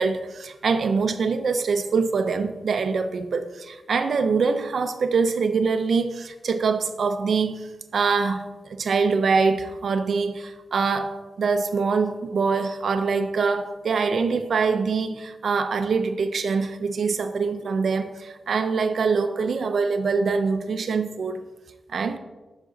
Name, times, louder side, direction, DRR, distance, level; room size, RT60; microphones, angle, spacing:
voice 1, 0.0-21.4 21.9-22.2, right 4 dB, 60° right, 8 dB, 0.6 m, -24 dB
7.6 x 5.9 x 4.0 m, 1.1 s
wide cardioid pair, 160°, 0 cm